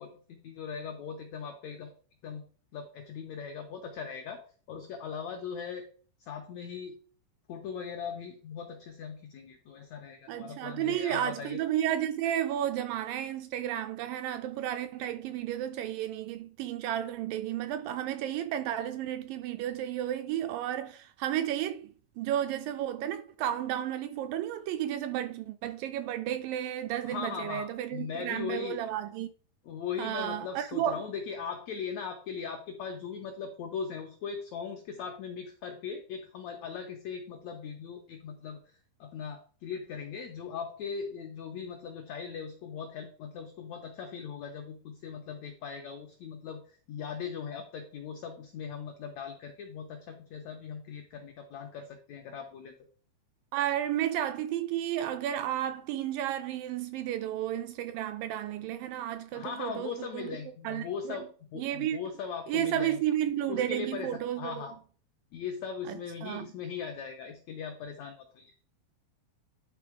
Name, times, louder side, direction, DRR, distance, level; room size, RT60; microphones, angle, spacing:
voice 1, 0.0-1.9 2.2-2.4 2.7-4.4 4.7-5.8 6.2-6.9 7.5-11.6 27.0-28.8 29.6-52.7 59.3-63.0 63.5-64.8 65.3-68.5, left 6 dB, 85° left, 1.5 m, -39 dB
voice 2, 10.3-29.3 30.0-31.0 53.5-60.4 60.6-61.2 61.6-62.0 62.5-64.7 65.9-66.5, right 11 dB, 80° right, 2.0 m, -32 dB
10.5 x 3.8 x 4.8 m
omnidirectional pair, 4.3 m